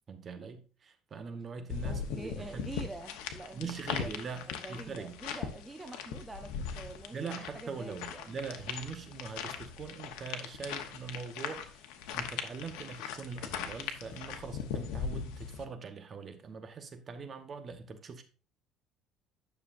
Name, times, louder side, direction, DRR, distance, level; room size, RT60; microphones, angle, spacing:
voice 1, 0.1-2.7 3.5-5.2 7.1-11.9 12.1-18.2, right 5 dB, 35° right, 1.0 m, -42 dB
sound 1, 1.7-15.7, left 7 dB, 90° left, 1.0 m, -40 dB
voice 2, 1.8-4.1 4.5-8.3, right 2 dB, 10° right, 0.7 m, -46 dB
10.0 x 6.5 x 2.6 m
cardioid pair, 130°, 0 cm